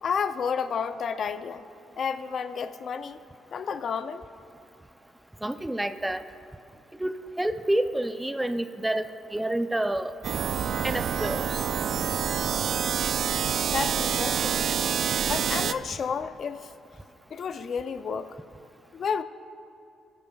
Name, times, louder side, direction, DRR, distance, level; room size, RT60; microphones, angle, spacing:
voice 1, 0.0-1.7 2.0-3.2 3.5-4.3 13.7-14.8 15.2-16.7 17.3-18.4 18.9-19.2, left 6 dB, 55° left, 11 dB, 0.5 m, -31 dB
voice 2, 5.4-6.2 7.0-9.0 9.3-10.1 10.8-11.6, right 1 dB, 10° right, 10 dB, 0.5 m, -28 dB
sound 1, 10.2-15.7, right 8 dB, 65° right, 0.4 m, -27 dB
24.0 x 12.0 x 2.3 m, 2.6 s
cardioid pair, 90°, 0 cm